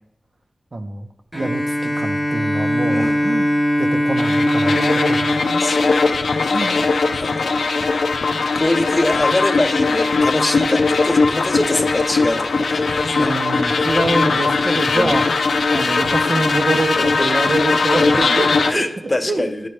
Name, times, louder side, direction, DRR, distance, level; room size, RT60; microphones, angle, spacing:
voice 1, 0.7-1.1 1.3-3.5 3.8-5.7 6.5-6.8 13.1-15.4 15.7-18.9 19.2-19.6, right 2 dB, 50° right, 5 dB, 0.7 m, -25 dB
Bowed string instrument, 1.3-7.0, equal, 5° right, 1.1 m, -21 dB
sound 1, 4.2-18.7, left 4 dB, 85° left, 0.5 m, -19 dB
voice 2, 5.6-6.9 7.2-7.6 8.5-13.3 14.9-15.2 17.2-17.3 18.7-19.7, left 1 dB, 30° left, 6 dB, 0.7 m, -24 dB
10.5 x 4.1 x 3.3 m, 0.84 s
cardioid pair, 45°, 0 cm